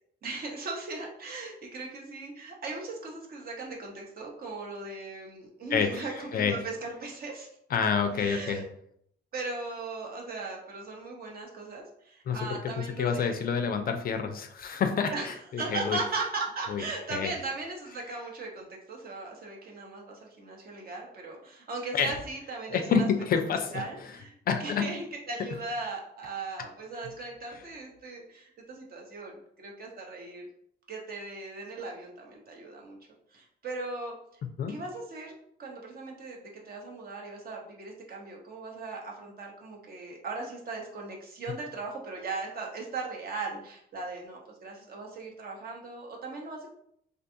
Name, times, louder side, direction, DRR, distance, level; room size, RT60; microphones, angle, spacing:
voice 1, 0.2-7.5 8.2-8.7 9.3-13.4 15.1-15.3 15.6-23.1 23.7-24.3 24.6-30.5 30.9-33.0 33.3-34.4 34.7-35.3 35.6-36.4 36.6-46.7, right 3 dB, 50° right, 0 dB, 0.8 m, -38 dB
voice 2, 5.7-6.6 7.7-8.6 12.3-16.0 16.7-16.8 17.1-17.3 21.9-22.1 22.7-24.1 24.5-24.9 27.5-27.6 34.6-34.7, left 6 dB, 50° left, 7 dB, 0.4 m, -28 dB
2.5 x 2.3 x 2.6 m, 0.70 s
cardioid pair, 90°, 20 cm